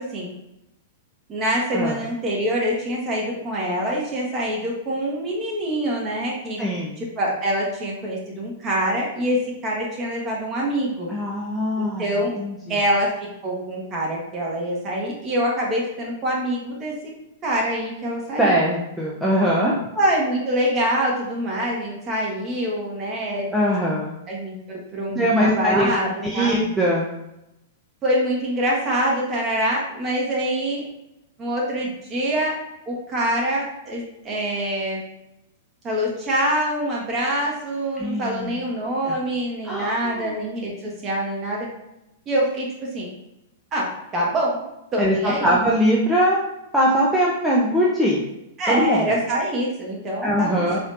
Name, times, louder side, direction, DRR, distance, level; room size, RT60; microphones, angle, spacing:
voice 1, 1.3-6.6 7.0-11.1 11.8-12.3 12.7-13.1 13.4-16.9 17.4-18.6 19.9-23.5 24.3-26.6 28.0-30.8 31.4-32.6 32.8-35.0 35.8-41.7 42.3-43.1 43.7-44.6 44.9-45.6 48.6-50.8, right 1 dB, 30° right, -3 dB, 1.3 m, -25 dB
voice 2, 6.6-7.0 11.1-12.1 12.4-12.8 18.4-19.8 23.5-24.2 25.1-25.9 26.2-27.1 38.0-38.6 39.1-39.2 39.6-40.3 45.0-48.2 48.7-49.1 50.2-50.8, equal, 5° right, -5 dB, 0.6 m, -21 dB
4.0 x 3.1 x 2.6 m, 0.87 s
figure-of-eight pair, 100°, 0 cm